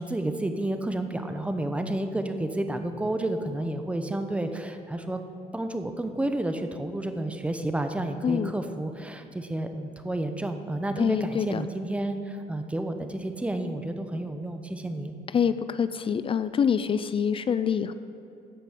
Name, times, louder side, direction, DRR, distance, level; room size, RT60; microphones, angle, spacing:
voice 1, 0.0-5.2 5.5-15.1, right 1 dB, 5° right, 7 dB, 0.8 m, -30 dB
voice 2, 11.0-11.7 15.3-17.9, left 7 dB, 30° left, 13 dB, 0.4 m, -26 dB
13.5 x 5.3 x 7.7 m, 2.8 s
cardioid pair, 110°, 17 cm